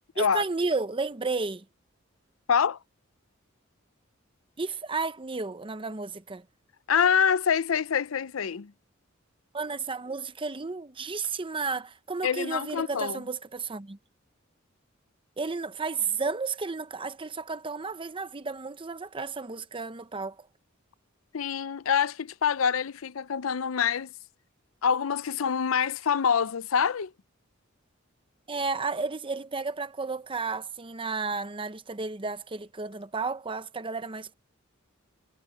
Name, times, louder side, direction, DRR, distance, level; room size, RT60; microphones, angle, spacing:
voice 1, 0.2-1.6 4.6-6.4 9.5-14.0 15.4-20.5 28.5-34.3, right 4 dB, 25° right, 0.8 m, -32 dB
voice 2, 2.5-2.8 6.9-8.7 12.2-13.2 21.3-24.1 24.8-27.1, left 7 dB, 90° left, 0.6 m, -26 dB
head